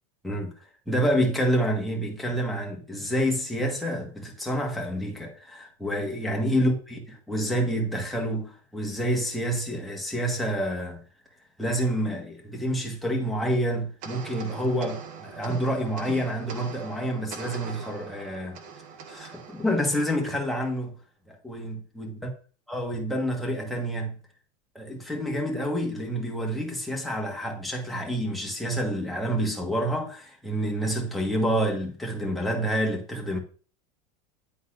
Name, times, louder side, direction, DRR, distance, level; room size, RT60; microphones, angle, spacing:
voice 1, 0.9-11.0 11.6-18.6 19.1-20.9 21.3-22.1 22.7-24.2 24.7-33.4, equal, ahead, 1.2 m, -28 dB
sound 1, 14.0-20.7, right 6 dB, 45° right, 0.9 m, -42 dB
9.8 x 3.9 x 2.4 m
supercardioid pair, 145°, 18 cm